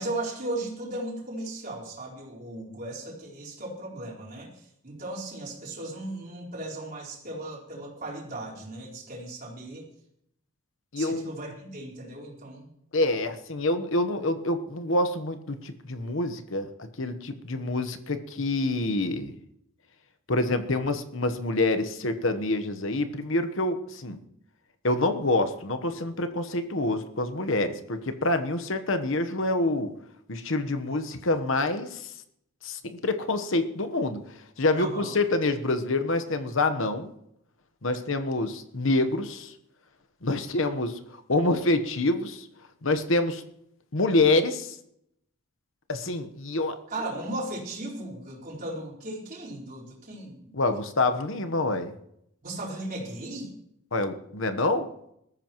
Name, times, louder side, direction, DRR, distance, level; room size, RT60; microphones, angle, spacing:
voice 1, 0.0-4.5 4.8-9.9 11.0-12.7 34.7-35.1 46.9-50.5 52.4-53.5, right 1 dB, 40° right, -4 dB, 4.3 m, -36 dB
voice 2, 10.9-11.3 12.9-19.3 20.3-24.2 24.8-29.9 30.3-32.1 32.6-34.2 34.6-37.1 37.8-39.5 40.2-41.0 41.3-42.5 42.8-43.4 43.9-44.7 45.9-46.8 50.5-51.9 53.9-54.9, left 2 dB, 60° left, 9 dB, 1.1 m, -26 dB
20.5 x 13.5 x 3.1 m, 0.76 s
head